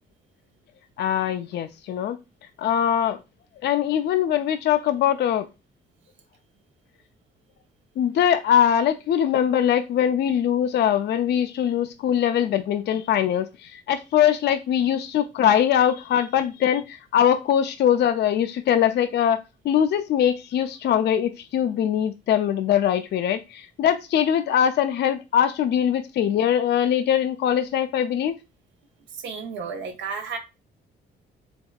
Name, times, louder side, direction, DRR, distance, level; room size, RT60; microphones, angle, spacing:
voice 1, 1.0-2.2 2.6-3.2 3.6-5.5 8.0-19.4 19.6-28.4, left 9 dB, 60° left, 8 dB, 0.4 m, -22 dB
voice 2, 29.1-30.4, right 5 dB, 70° right, 4 dB, 0.6 m, -32 dB
3.5 x 3.2 x 2.3 m, 0.25 s
cardioid pair, 90°, 20 cm